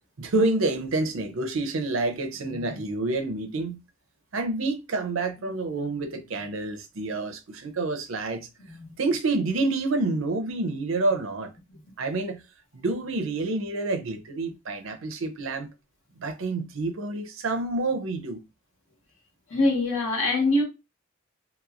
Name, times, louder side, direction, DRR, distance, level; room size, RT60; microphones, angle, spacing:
voice 1, 0.2-3.8 4.3-8.5 9.0-11.5 12.0-12.4 12.7-15.7 16.2-18.4, right 2 dB, 85° right, 0.6 m, -28 dB
voice 2, 2.5-2.8 5.4-5.5 8.7-8.9 19.5-20.6, left 2 dB, 90° left, 1.3 m, -25 dB
3.1 x 3.0 x 2.4 m
head